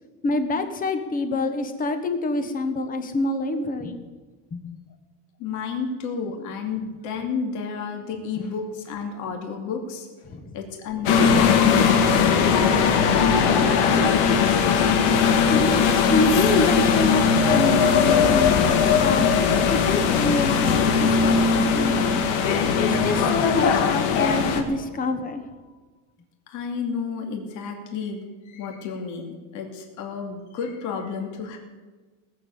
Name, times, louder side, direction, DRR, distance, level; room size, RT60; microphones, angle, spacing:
voice 1, 0.2-4.0 4.5-4.7 10.3-10.6 15.5-22.2 22.6-25.5, left 2 dB, 25° left, 8 dB, 1.3 m, -27 dB
voice 2, 5.4-10.1 10.5-14.7 26.5-31.6, left 5 dB, 55° left, 3 dB, 2.7 m, -32 dB
sound 1, 11.1-24.6, left 6 dB, 75° left, 2.0 m, -19 dB
18.5 x 7.4 x 8.4 m, 1.3 s
cardioid pair, 155°, 36 cm